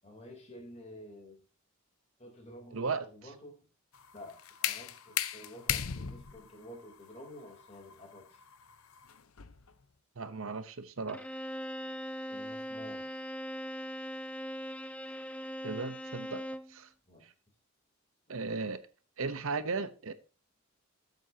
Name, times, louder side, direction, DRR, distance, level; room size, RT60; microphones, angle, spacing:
voice 1, 0.0-1.4 2.2-3.6 4.1-8.4 12.3-13.1 17.1-17.2, left 1 dB, 30° left, 2 dB, 3.2 m, -50 dB
voice 2, 2.7-3.0 10.2-11.2 15.6-16.4 16.7-16.9 17.2-17.3 18.3-18.8 19.2-20.1, right 4 dB, 65° right, 12 dB, 0.8 m, -36 dB
sound 1, 3.9-9.7, left 10 dB, 70° left, 0.7 m, -37 dB
Bowed string instrument, 11.1-16.8, equal, 5° left, 0.4 m, -40 dB
14.0 x 8.0 x 2.8 m, 0.34 s
head